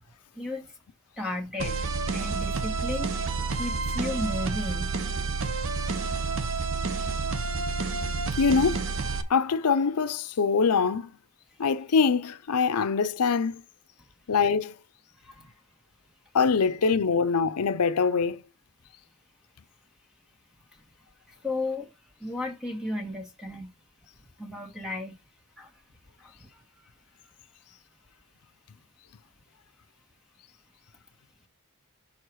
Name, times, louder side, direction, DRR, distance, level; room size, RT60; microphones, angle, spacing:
voice 1, 0.4-0.7 1.2-1.8 2.1-5.0 5.3-5.5 5.8-5.9 15.2-15.5 21.4-21.9 22.2-23.7 24.4-25.2 25.6-25.7 26.2-26.6, left 2 dB, 5° right, 1.4 m, -34 dB
sound 1, 1.6-9.2, right 4 dB, 60° right, 0.8 m, -29 dB
voice 2, 8.4-8.8 9.3-11.1 11.6-13.6 14.3-14.8 16.3-18.4, left 5 dB, 85° left, 0.6 m, -24 dB
6.5 x 4.7 x 4.7 m
head